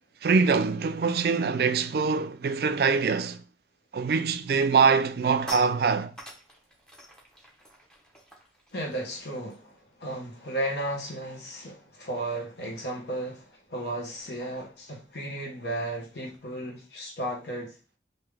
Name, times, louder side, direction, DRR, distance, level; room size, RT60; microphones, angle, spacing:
voice 1, 0.2-3.4 3.9-6.1, right 5 dB, 60° right, 0.3 m, -24 dB
sound 1, 5.1-10.7 10.9-11.2 11.4-16.5, equal, 5° left, 0.7 m, -48 dB
voice 2, 8.7-17.8, right 1 dB, 70° left, 1.0 m, -34 dB
3.5 x 2.7 x 3.2 m
head